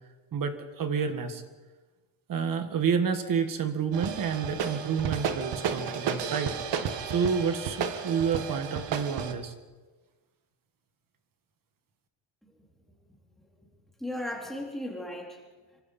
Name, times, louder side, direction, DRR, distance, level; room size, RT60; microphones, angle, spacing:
voice 1, 0.3-1.4 2.3-6.6 7.1-9.5, right 6 dB, 40° right, 8 dB, 1.8 m, -29 dB
sound 1, 3.9-9.3, right 7 dB, 55° right, 1.7 m, -32 dB
voice 2, 12.4-13.2 13.6-13.7 14.0-15.8, left 1 dB, ahead, -3 dB, 3.8 m, -38 dB
26.5 x 24.5 x 4.4 m, 1.3 s
cardioid pair, 175°, 50 cm